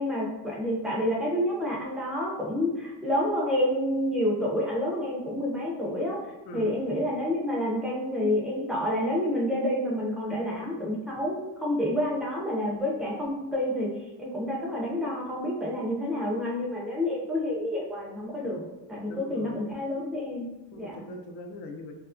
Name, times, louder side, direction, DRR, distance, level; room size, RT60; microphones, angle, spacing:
voice 1, 0.0-6.2 6.5-13.9 14.2-18.6 18.9-21.0, left 1 dB, ahead, -4 dB, 0.3 m, -29 dB
voice 2, 19.1-19.6 20.7-21.9, left 2 dB, 85° left, 4 dB, 0.5 m, -41 dB
2.7 x 2.3 x 2.4 m, 1.0 s
cardioid pair, 160°, 41 cm